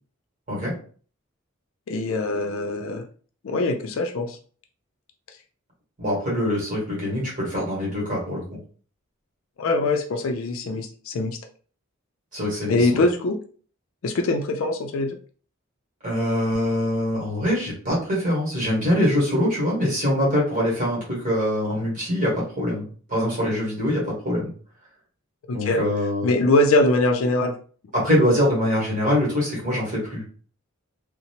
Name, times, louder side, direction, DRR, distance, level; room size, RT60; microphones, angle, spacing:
voice 1, 1.9-3.0 3.4-4.4 9.6-11.4 12.7-13.4 14.0-15.2 25.5-25.8 26.2-27.6, left 2 dB, 70° left, 4 dB, 0.4 m, -22 dB
voice 2, 6.0-8.4 12.3-13.0 16.0-24.5 25.5-26.3 27.9-30.2, left 1 dB, 40° right, -5 dB, 1.3 m, -23 dB
2.7 x 2.1 x 2.8 m, 0.43 s
head